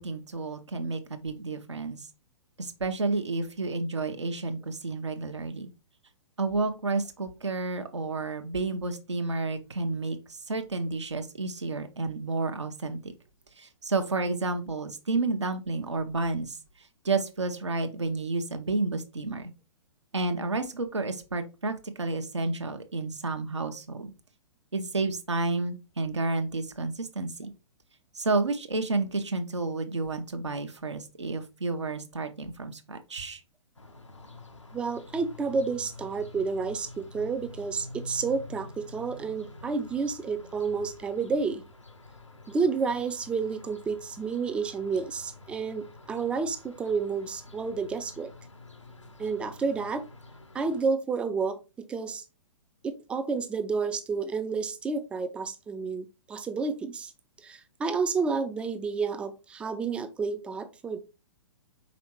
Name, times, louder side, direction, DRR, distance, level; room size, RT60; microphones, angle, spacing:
voice 1, 0.0-2.1 2.6-5.7 6.4-13.1 13.6-19.5 20.1-24.1 24.7-27.5 28.1-33.4, right 3 dB, 75° right, 0.7 m, -31 dB
sound 1, 33.8-50.8, left 2 dB, 85° left, 0.8 m, -48 dB
voice 2, 34.7-41.6 42.5-48.3 49.2-50.1 50.5-52.2 52.8-57.1 57.4-61.0, right 5 dB, 5° right, 0.3 m, -30 dB
5.1 x 3.5 x 3.0 m
figure-of-eight pair, 120°, 15 cm